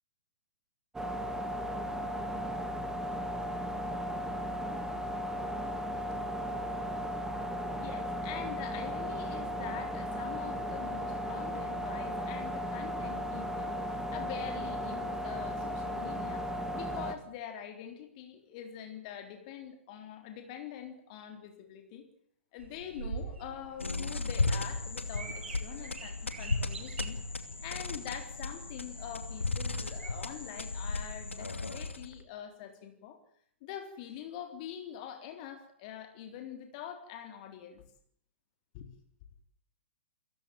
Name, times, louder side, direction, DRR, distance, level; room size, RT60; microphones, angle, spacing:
sound 1, 0.9-17.1, equal, 5° right, 2.5 m, -36 dB
voice 1, 7.3-22.1 22.5-27.2 27.6-33.2 33.6-37.8 38.7-38.9, left 9 dB, 35° left, 6 dB, 3.7 m, -44 dB
sound 2, 22.6-30.1, right 5 dB, 60° right, 7.7 m, -46 dB
sound 3, 23.8-32.2, left 3 dB, 75° left, 2.7 m, -35 dB
29.5 x 16.0 x 9.3 m, 0.65 s
figure-of-eight pair, 115°, 7 cm